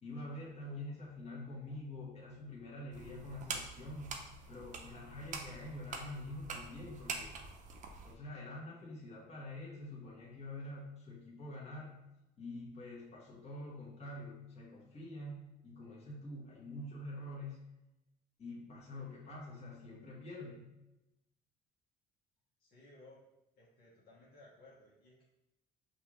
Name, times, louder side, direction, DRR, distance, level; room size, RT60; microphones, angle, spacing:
voice 1, 0.0-4.2 4.5-7.4 8.0-12.0 12.4-17.6 18.4-20.7, left 1 dB, 40° left, -4 dB, 1.3 m, -46 dB
sound 1, 2.9-8.1, right 4 dB, 45° right, 0.6 m, -45 dB
voice 2, 22.6-23.2 23.5-25.2, left 2 dB, 65° left, -5 dB, 1.1 m, -59 dB
5.4 x 2.6 x 3.0 m, 0.95 s
cardioid pair, 110°, 17 cm